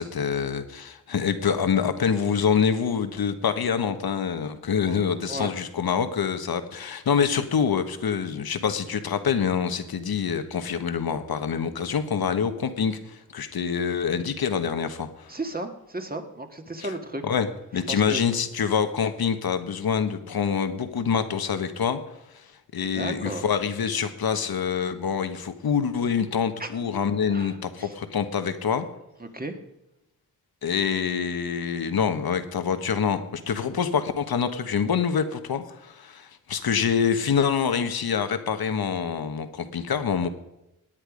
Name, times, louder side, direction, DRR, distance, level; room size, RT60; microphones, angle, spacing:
voice 1, 0.0-15.3 17.2-17.5 17.7-22.0 22.3-22.5 22.7-28.9 30.6-40.3, left 7 dB, 90° left, 10 dB, 1.3 m, -26 dB
voice 2, 15.3-17.2 17.9-18.2 22.9-23.4 26.6-26.7 27.3-27.9 29.2-29.6, right 2 dB, 25° right, 6 dB, 1.8 m, -34 dB
18.0 x 10.0 x 5.1 m, 0.93 s
wide cardioid pair, 90°, 36 cm